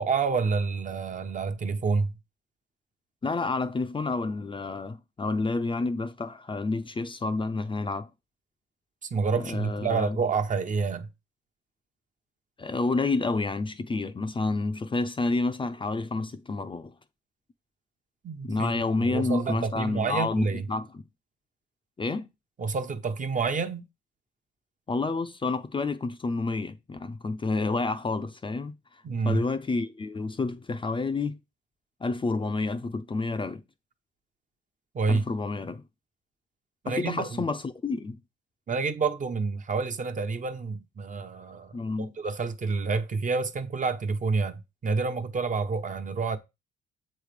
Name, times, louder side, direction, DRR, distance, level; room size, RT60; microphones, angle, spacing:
voice 1, 0.0-2.1 9.1-11.1 18.2-18.7 19.0-20.6 22.6-23.8 29.0-29.4 34.9-35.2 36.8-37.4 38.7-46.4, right 4 dB, 40° right, 1.0 m, -28 dB
voice 2, 3.2-8.1 9.4-10.2 12.6-16.9 18.4-21.0 22.0-22.3 24.9-28.7 29.2-31.4 32.0-33.6 35.1-35.8 36.9-38.2 41.7-42.1, left 3 dB, 25° left, 0.6 m, -29 dB
7.4 x 3.3 x 5.1 m
cardioid pair, 90°, 20 cm